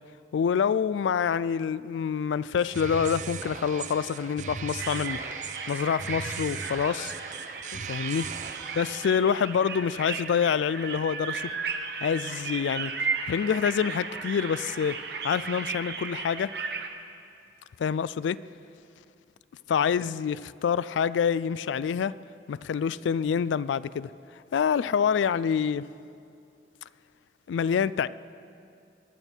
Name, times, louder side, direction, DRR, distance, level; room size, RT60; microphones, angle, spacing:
voice 1, 0.3-5.2 5.7-7.1 7.7-8.2 8.8-11.5 12.0-12.9 13.3-15.0 15.2-16.5 17.8-18.4 19.7-22.1 22.5-24.1 24.5-25.9 27.5-28.1, left 7 dB, 85° left, 0.3 m, -26 dB
sound 1, 2.5-9.1, right 6 dB, 40° right, 0.5 m, -38 dB
sound 2, 4.8-16.9, right 5 dB, 60° right, 0.9 m, -35 dB
21.5 x 10.5 x 4.4 m
head